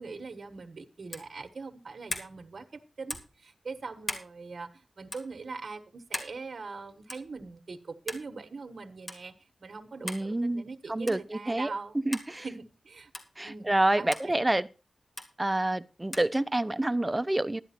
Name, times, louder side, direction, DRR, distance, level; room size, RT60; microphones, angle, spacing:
voice 1, 0.0-9.3 9.6-12.0 12.4-13.1 13.4-13.7 14.0-14.3, right 4 dB, 60° right, 1.3 m, -42 dB
sound 1, 1.1-1.3 2.1-2.3 3.1-3.4 4.0-4.3 5.1-5.3 6.1-6.4 7.1-7.3 8.1-8.3 9.1-9.2 10.1-10.3 11.1-11.3 12.1-12.3 13.1-13.3 14.1-14.3 15.2-15.3 16.1-16.3, left 2 dB, 40° left, 2.3 m, -37 dB
voice 2, 10.0-11.7 12.0-12.4 13.4-14.7 15.4-17.6, right 1 dB, 20° right, 0.6 m, -28 dB
12.0 x 10.5 x 4.4 m
wide cardioid pair, 85°, 0 cm